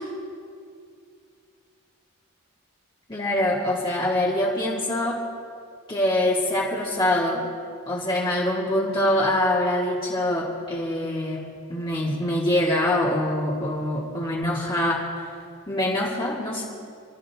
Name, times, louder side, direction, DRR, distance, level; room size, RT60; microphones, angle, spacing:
voice 1, 3.1-5.2 5.9-7.4 7.9-11.4 11.7-15.2 15.7-16.7, left 1 dB, 20° left, -6 dB, 2.1 m, -24 dB
28.5 x 13.5 x 3.6 m, 2.3 s
head